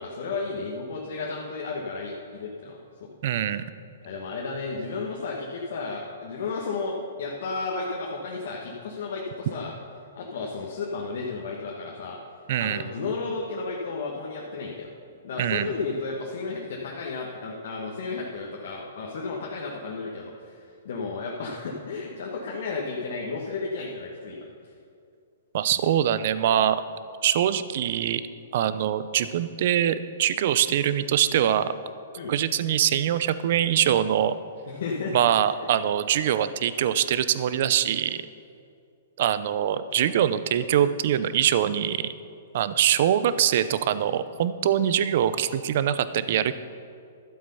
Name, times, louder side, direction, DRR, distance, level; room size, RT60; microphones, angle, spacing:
voice 1, 0.0-3.1 4.0-9.7 10.1-12.2 12.6-14.9 15.2-24.7 32.1-32.3 34.7-35.5, left 4 dB, 65° left, -2 dB, 1.4 m, -33 dB
voice 2, 3.2-3.6 12.5-12.8 15.4-15.7 25.5-26.8 27.2-28.2 28.5-31.7 32.3-34.3 35.1-38.2 39.2-42.0 42.5-46.5, right 10 dB, 55° right, 14 dB, 0.5 m, -23 dB
12.0 x 7.9 x 5.5 m, 2.4 s
hypercardioid pair, 150°, 0 cm